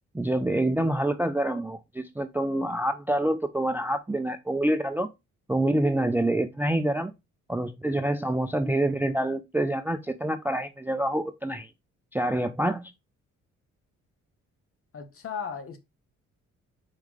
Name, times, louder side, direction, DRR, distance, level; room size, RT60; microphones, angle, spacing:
voice 1, 0.1-5.1 5.5-7.1 7.5-11.7 12.1-12.9, right 1 dB, 5° right, 0.4 m, -26 dB
voice 2, 14.9-15.8, left 6 dB, 45° left, 1.1 m, -35 dB
4.6 x 3.1 x 3.6 m
cardioid pair, 90°, 30 cm